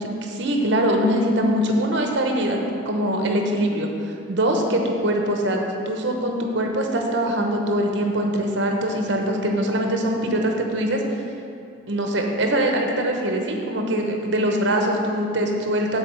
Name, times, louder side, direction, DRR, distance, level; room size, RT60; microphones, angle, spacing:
voice 1, 0.0-2.6 2.8-3.9 4.3-5.6 5.9-11.0 11.9-16.0, right 1 dB, 60° right, 2 dB, 0.9 m, -22 dB
7.4 x 4.2 x 6.8 m, 2.6 s
head